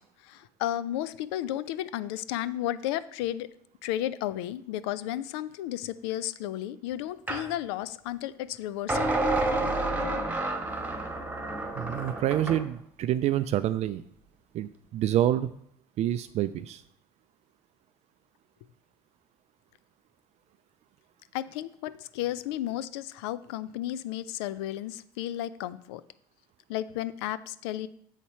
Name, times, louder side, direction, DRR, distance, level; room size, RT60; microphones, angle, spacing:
voice 1, 0.2-3.5 3.8-9.2 21.3-26.0 26.7-27.9, left 13 dB, 85° left, 16 dB, 0.4 m, -33 dB
sound 1, 7.3-7.5 8.9-12.7, right 2 dB, 10° right, 1.3 m, -29 dB
voice 2, 11.7-14.0 14.5-15.5 16.0-16.8, right 12 dB, 55° right, 12 dB, 0.4 m, -27 dB
7.4 x 4.2 x 5.6 m, 0.67 s
supercardioid pair, 75°, 13 cm